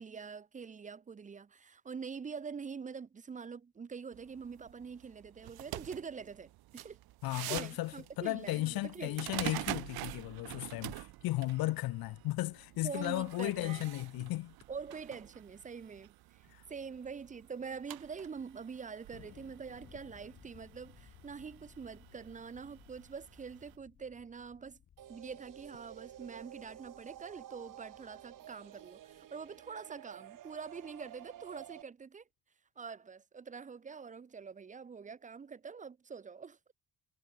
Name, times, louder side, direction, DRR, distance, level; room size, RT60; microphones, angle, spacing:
voice 1, 0.0-7.0 7.5-9.3 12.8-13.8 14.7-16.4 16.7-24.8 25.1-32.2 32.8-36.6, right 5 dB, 20° right, 0.6 m, -45 dB
sound 1, 4.1-23.7, right 17 dB, 85° right, 0.6 m, -47 dB
voice 2, 7.2-14.5 16.5-16.6, left 17 dB, 75° left, 0.6 m, -35 dB
Thunder, 19.1-29.8, left 9 dB, 50° left, 2.9 m, -61 dB
sound 2, 25.0-31.8, right 12 dB, 60° right, 1.4 m, -52 dB
cardioid pair, 165°, 36 cm